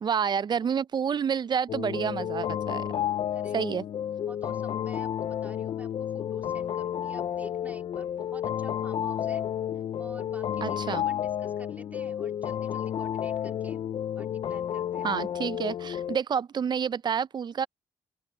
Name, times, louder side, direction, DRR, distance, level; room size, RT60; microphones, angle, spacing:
voice 1, 0.0-2.9 3.5-3.8 10.6-11.0 15.0-17.7, right 7 dB, 45° right, 0.6 m, -29 dB
sound 1, 1.7-16.2, left 10 dB, 60° left, 0.6 m, -31 dB
voice 2, 3.3-3.7 4.3-9.4 9.7-13.8 14.2-15.1, right 1 dB, 15° right, 3.5 m, -50 dB
open air
supercardioid pair, 55°, 10 cm